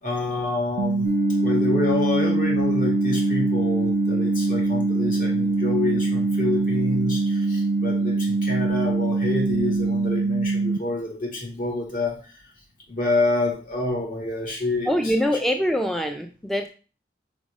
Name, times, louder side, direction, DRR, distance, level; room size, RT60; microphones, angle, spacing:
voice 1, 0.0-1.1 1.4-12.3 12.9-15.1, left 2 dB, 50° left, -1 dB, 2.4 m, -27 dB
sound 1, 0.8-10.8, right 3 dB, 90° right, 0.3 m, -24 dB
sound 2, 1.0-10.1, left 1 dB, 85° left, 2.5 m, -29 dB
voice 2, 14.9-16.7, equal, ahead, 4 dB, 0.4 m, -24 dB
4.9 x 3.9 x 5.2 m, 0.36 s
head